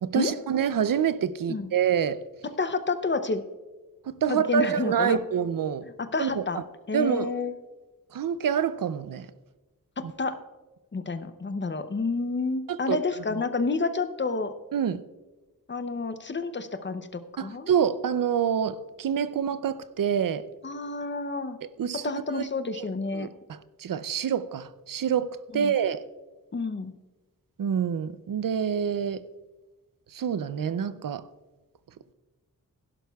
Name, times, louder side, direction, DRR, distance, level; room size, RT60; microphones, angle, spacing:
voice 1, 0.0-2.2 4.1-5.9 6.2-6.4 6.9-7.3 8.1-9.3 10.0-10.1 12.7-13.0 13.3-13.4 14.7-15.0 17.4-20.4 21.8-22.4 22.7-26.0 27.6-29.2 30.1-31.2, right 8 dB, 70° right, 15 dB, 0.5 m, -27 dB
voice 2, 2.6-3.4 4.3-5.2 6.0-6.6 6.9-7.5 10.0-10.4 10.9-14.5 15.7-17.7 20.6-21.6 22.0-23.3 25.5-25.7 26.5-26.9, left 3 dB, 35° left, 10 dB, 0.6 m, -29 dB
17.0 x 11.0 x 2.3 m, 1.2 s
wide cardioid pair, 145°, 35 cm